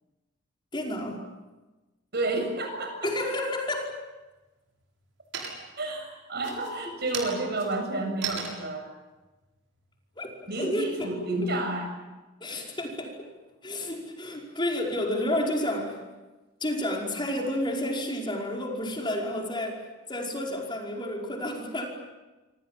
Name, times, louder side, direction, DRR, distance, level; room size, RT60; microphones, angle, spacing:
voice 1, 0.7-1.2 3.0-3.9 10.2-10.9 12.4-13.3 13.6-16.0 16.6-19.8 20.1-21.9, left 1 dB, 25° left, 0 dB, 5.2 m, -30 dB
voice 2, 2.1-3.1 5.8-8.9 10.5-11.9, right 2 dB, 60° right, 5 dB, 7.2 m, -30 dB
sound 1, 3.7-4.3 4.7-5.1 5.3-5.9 6.3-10.8, right 6 dB, 85° right, 7.3 m, -38 dB
28.0 x 25.5 x 7.6 m, 1.1 s
head